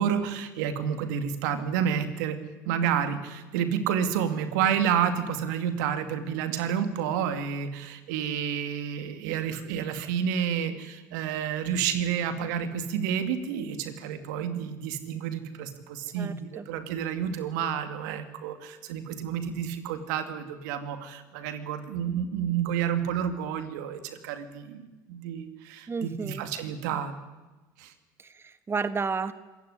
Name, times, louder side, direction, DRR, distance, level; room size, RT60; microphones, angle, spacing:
voice 1, 0.0-2.4 2.7-27.2 27.8-27.9, right 8 dB, 80° right, 9 dB, 2.4 m, -30 dB
voice 2, 16.2-16.6 25.9-26.4 28.2-29.3, right 5 dB, 25° right, 12 dB, 1.4 m, -32 dB
26.0 x 15.5 x 9.9 m, 1.2 s
hypercardioid pair, 75°, 10 cm